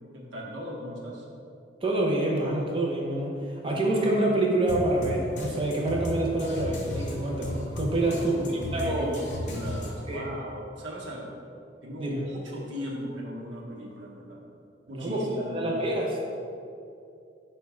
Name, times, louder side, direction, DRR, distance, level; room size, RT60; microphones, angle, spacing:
voice 1, 0.1-1.2 8.0-11.3 11.8-14.4 14.9-15.8, equal, 85° right, -3 dB, 0.8 m, -38 dB
voice 2, 1.8-8.3 8.7-9.1 10.1-10.3 12.0-12.1 14.9-16.1, right 1 dB, 30° right, -2 dB, 0.6 m, -27 dB
sound 1, 4.7-10.2, left 1 dB, 40° left, 0.7 m, -35 dB
4.6 x 2.2 x 4.7 m, 2.5 s
head